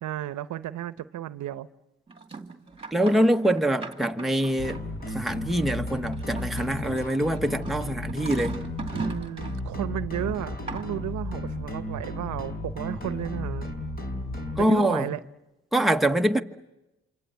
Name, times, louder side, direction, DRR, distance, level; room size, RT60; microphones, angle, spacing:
voice 1, 0.0-1.7 8.9-13.7 14.6-15.2, right 12 dB, 75° right, 0.9 m, -33 dB
sound 1, 2.1-5.1 6.1-9.6 10.2-11.1, right 4 dB, 20° right, 2.2 m, -39 dB
voice 2, 2.9-8.6 14.6-15.1 15.7-16.4, right 1 dB, ahead, 1.2 m, -24 dB
sound 2, 4.6-14.7, left 1 dB, 30° left, 4.6 m, -34 dB
28.0 x 25.5 x 8.1 m
cardioid pair, 90°, 30 cm